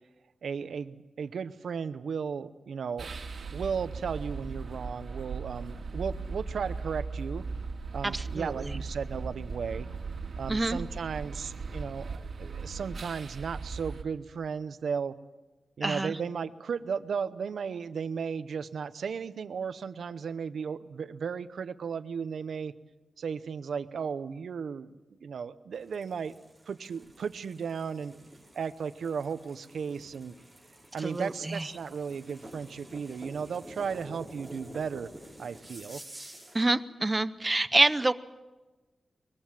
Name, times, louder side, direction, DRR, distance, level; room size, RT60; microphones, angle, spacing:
voice 1, 0.4-3.1 3.5-7.4 7.9-9.9 10.4-15.1 15.8-22.7 23.2-24.9 25.2-26.3 26.7-28.2 28.5-30.3 30.9-35.1 35.4-36.0, right 6 dB, 85° right, 13 dB, 0.8 m, -35 dB
sound 1, 3.0-14.0, right 4 dB, 55° right, 2.3 m, -38 dB
voice 2, 8.0-8.7 10.5-10.8 15.8-16.1 31.0-31.7 36.5-38.1, right 2 dB, 20° right, 12 dB, 0.7 m, -27 dB
sound 2, 25.7-36.7, right 1 dB, 5° left, 5.5 m, -49 dB
23.0 x 21.5 x 7.5 m, 1.2 s
wide cardioid pair, 160°, 0 cm